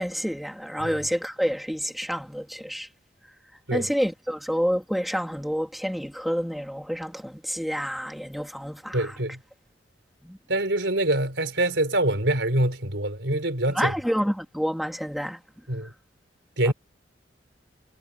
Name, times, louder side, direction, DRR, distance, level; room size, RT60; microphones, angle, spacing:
voice 1, 0.0-2.9 3.7-9.2 10.2-10.4 13.7-15.4 16.7-16.8, equal, ahead, 2.3 m, -28 dB
voice 2, 8.9-9.4 10.5-13.9 15.7-15.9 16.6-16.7, right 1 dB, 80° right, 4.4 m, -25 dB
head